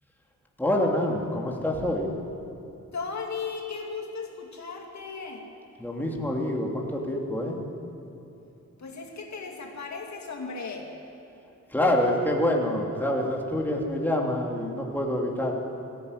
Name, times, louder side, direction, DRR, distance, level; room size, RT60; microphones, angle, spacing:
voice 1, 0.6-2.1 5.8-7.6 11.7-15.5, left 1 dB, 5° left, -1 dB, 2.9 m, -26 dB
voice 2, 2.9-5.4 8.8-10.9, left 4 dB, 60° left, 1 dB, 2.6 m, -36 dB
17.5 x 15.5 x 9.9 m, 2.7 s
cardioid pair, 85°, 31 cm